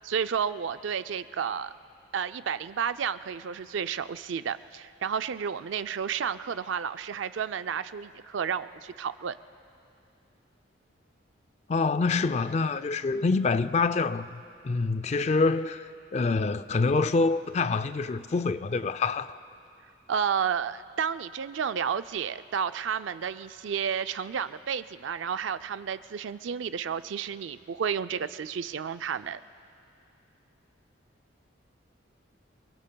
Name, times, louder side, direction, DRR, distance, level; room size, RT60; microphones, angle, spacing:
voice 1, 0.0-1.7 2.1-9.4 20.1-29.4, right 7 dB, 70° right, 0.4 m, -31 dB
voice 2, 11.7-19.4, left 4 dB, 35° left, 0.3 m, -26 dB
28.0 x 22.5 x 2.3 m
head